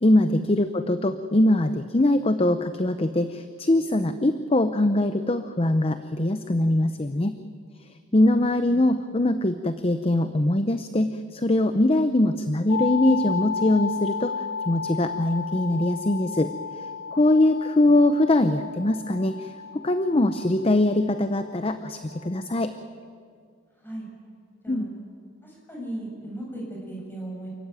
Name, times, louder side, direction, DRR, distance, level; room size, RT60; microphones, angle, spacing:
voice 1, 0.0-7.4 8.1-16.5 16.8-19.5 19.8-22.7 24.7-24.9, left 1 dB, 25° left, 10 dB, 0.6 m, -22 dB
sound 1, 12.7-22.5, left 6 dB, 80° left, 1.1 m, -34 dB
voice 2, 25.4-27.5, right 1 dB, 10° left, -3 dB, 7.5 m, -37 dB
28.5 x 15.0 x 9.5 m, 2.2 s
head